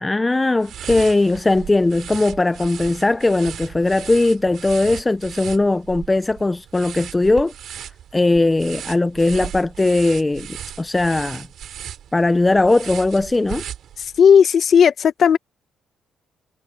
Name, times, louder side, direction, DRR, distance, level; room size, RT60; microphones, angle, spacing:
voice 1, 0.0-7.5 8.1-11.5 12.1-13.6, left 2 dB, 15° left, 0.6 m, -19 dB
sound 1, 0.6-14.3, right 10 dB, 70° right, 3.2 m, -36 dB
voice 2, 14.2-15.4, left 7 dB, 55° left, 1.4 m, -13 dB
cardioid pair, 90°, 0 cm